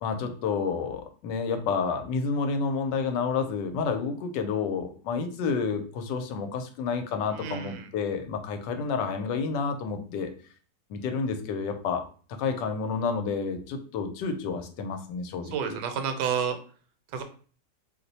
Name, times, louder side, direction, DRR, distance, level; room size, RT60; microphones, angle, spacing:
voice 1, 0.0-10.3 10.9-12.0 12.3-15.8, left 5 dB, 90° left, 7 dB, 1.2 m, -30 dB
voice 2, 7.3-7.9 15.5-16.6 17.1-17.2, right 7 dB, 80° right, 7 dB, 1.2 m, -30 dB
2.9 x 2.0 x 4.0 m, 0.41 s
omnidirectional pair, 1.9 m